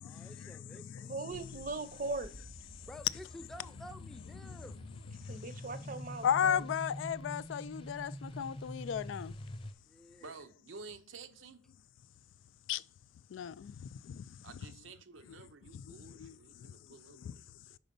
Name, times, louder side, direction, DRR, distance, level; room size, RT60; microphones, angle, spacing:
voice 1, 0.0-1.1 2.9-4.8 9.9-10.3, equal, ahead, 0.5 m, -51 dB
voice 2, 1.1-2.3 5.3-6.6, right 3 dB, 45° right, 0.6 m, -39 dB
sound 1, 1.3-9.7, equal, 30° left, 0.8 m, -46 dB
voice 3, 6.2-8.1 8.4-9.3 12.7-12.8 13.3-13.5, left 8 dB, 75° left, 0.3 m, -32 dB
voice 4, 10.2-11.6 14.4-17.8, right 4 dB, 85° right, 0.7 m, -52 dB
5.1 x 4.9 x 5.2 m
head